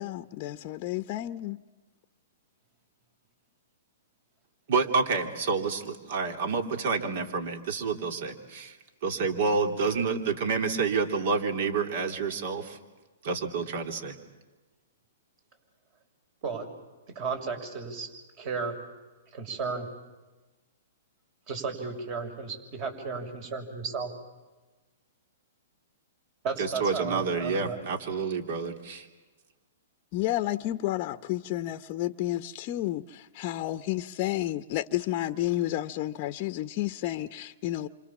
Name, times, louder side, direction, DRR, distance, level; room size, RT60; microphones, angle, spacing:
voice 1, 0.0-1.6 30.1-37.9, left 15 dB, 40° left, 0.8 m, -31 dB
voice 2, 4.7-8.7 9.0-12.8 13.2-14.1 26.6-29.1, right 4 dB, 60° right, 3.3 m, -28 dB
voice 3, 17.1-18.1 18.4-18.7 19.3-19.9 21.5-24.1 26.4-27.8, right 5 dB, 45° right, 6.6 m, -34 dB
28.5 x 26.5 x 7.4 m
hypercardioid pair, 125°, 0 cm